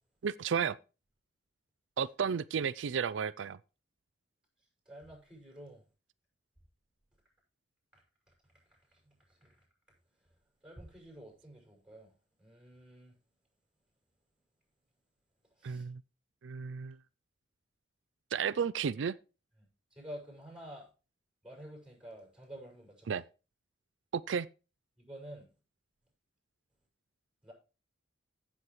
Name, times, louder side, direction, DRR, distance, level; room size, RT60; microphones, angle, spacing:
voice 1, 0.2-0.8 2.0-3.6 15.6-16.0 16.4-17.0 18.3-19.2 23.1-23.2 24.1-24.5, right 6 dB, 85° right, 0.4 m, -33 dB
voice 2, 4.9-5.8 9.1-9.2 9.4-9.5 10.6-12.1 12.4-13.1 15.6-15.8 19.9-20.9 21.4-23.2 25.0-25.5 27.4-27.5, equal, 5° right, 6.1 m, -49 dB
16.0 x 7.3 x 3.1 m
head